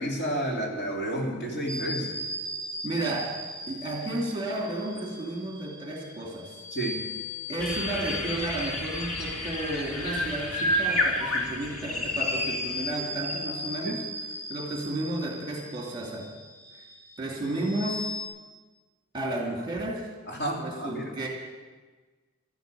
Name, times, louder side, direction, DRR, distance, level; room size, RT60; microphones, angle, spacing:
voice 1, 0.0-2.2 6.7-7.0 13.8-13.9 20.3-21.0, right 1 dB, 50° left, -2 dB, 3.2 m, -31 dB
sound 1, 1.7-18.3, left 1 dB, 10° left, 3.4 m, -38 dB
voice 2, 2.8-6.6 7.5-14.1 14.5-16.3 17.2-18.1 19.1-20.1 20.6-21.3, right 1 dB, 20° right, -1 dB, 2.7 m, -32 dB
sound 2, 7.6-12.9 13.2-13.4, left 1 dB, 80° left, 2.1 m, -30 dB
13.5 x 9.2 x 9.1 m, 1.3 s
head